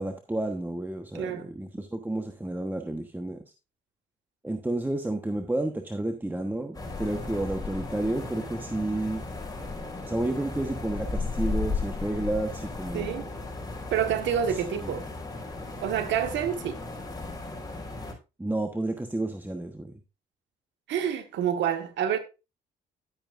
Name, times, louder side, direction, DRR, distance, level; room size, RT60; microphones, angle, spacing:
voice 1, 0.0-3.4 4.4-9.2 10.0-13.4 14.5-14.9 18.4-19.9, right 1 dB, 10° right, 1.2 m, -31 dB
voice 2, 1.1-1.5 12.9-13.3 13.9-15.1 15.8-16.8 20.9-22.2, right 9 dB, 75° right, 1.6 m, -28 dB
sound 1, 6.7-18.1, left 3 dB, 20° left, 5.1 m, -35 dB
11.5 x 8.8 x 2.6 m
supercardioid pair, 65°, 19 cm